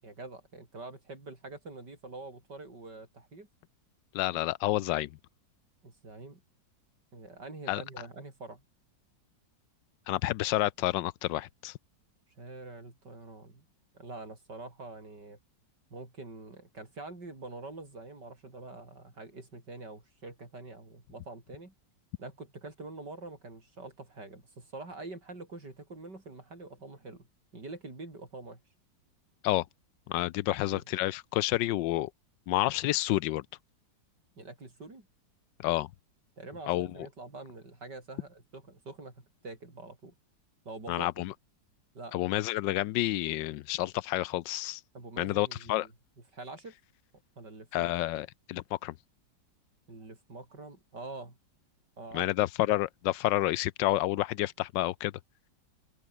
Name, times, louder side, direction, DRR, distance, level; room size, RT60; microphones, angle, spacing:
voice 1, 0.0-3.5 5.8-6.4 7.1-8.6 12.4-13.7 13.9-15.4 15.9-21.7 22.2-27.3 27.5-28.6 30.7-30.8 34.4-35.1 36.4-40.1 40.6-41.1 41.9-42.1 44.9-45.9 46.3-46.7 47.4-47.9 49.9-51.4 52.0-52.3, right 2 dB, 65° right, 6.3 m, -45 dB
voice 2, 4.1-5.1 7.7-7.8 10.1-11.7 29.4-29.6 30.1-32.1 32.5-33.4 35.6-35.9 36.7-36.9 40.9-41.3 42.1-44.8 45.2-45.9 47.7-48.9 52.1-55.1, left 16 dB, 85° left, 1.3 m, -29 dB
omnidirectional pair, 2.0 m